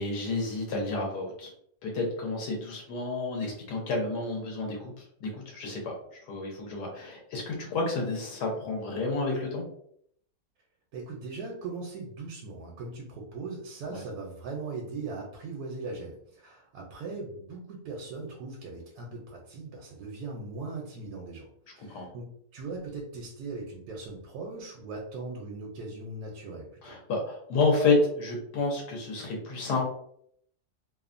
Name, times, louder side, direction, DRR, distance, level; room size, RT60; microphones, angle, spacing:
voice 1, 0.0-1.5 1.8-5.9 6.3-9.6 13.9-14.0 21.8-22.1 26.8-29.8, left 3 dB, 85° left, -1 dB, 1.3 m, -30 dB
voice 2, 10.9-21.5 21.8-26.9, right 3 dB, 75° right, -1 dB, 1.1 m, -39 dB
3.0 x 2.1 x 2.4 m, 0.69 s
omnidirectional pair, 1.7 m